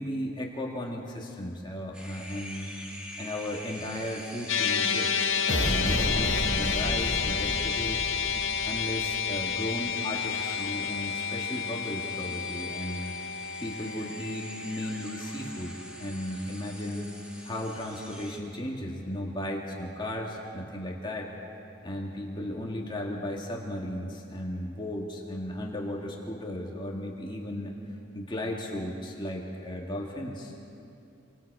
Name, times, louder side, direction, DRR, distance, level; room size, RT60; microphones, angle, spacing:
voice 1, 0.0-2.7 3.2-8.1 8.6-13.1 13.6-17.1 17.4-21.3 21.8-27.7 28.1-30.5, left 1 dB, 20° left, -1 dB, 2.2 m, -35 dB
sound 1, 1.9-18.4, left 1 dB, 5° right, 2.1 m, -45 dB
sound 2, 4.5-16.9, left 7 dB, 70° left, 1.4 m, -31 dB
sound 3, 5.5-9.1, equal, 60° right, 3.7 m, -32 dB
28.5 x 24.5 x 4.9 m, 2.7 s
head